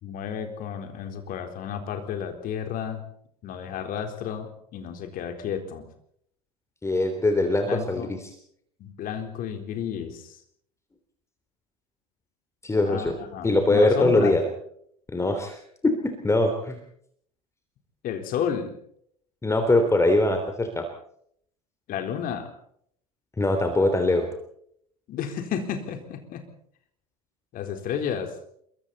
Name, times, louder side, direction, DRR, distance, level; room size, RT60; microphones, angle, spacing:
voice 1, 0.0-3.0 3.4-5.9 7.6-8.1 8.8-10.4 12.9-14.4 18.0-18.7 21.9-22.5 25.1-26.5 27.5-28.4, left 8 dB, 45° left, 6 dB, 4.0 m, -32 dB
voice 2, 6.8-8.2 12.6-13.1 13.4-14.4 15.1-15.6 15.8-16.8 19.4-20.9 23.4-24.3, left 2 dB, 15° left, 6 dB, 3.4 m, -22 dB
27.0 x 23.5 x 4.3 m, 0.66 s
figure-of-eight pair, 70°, 19 cm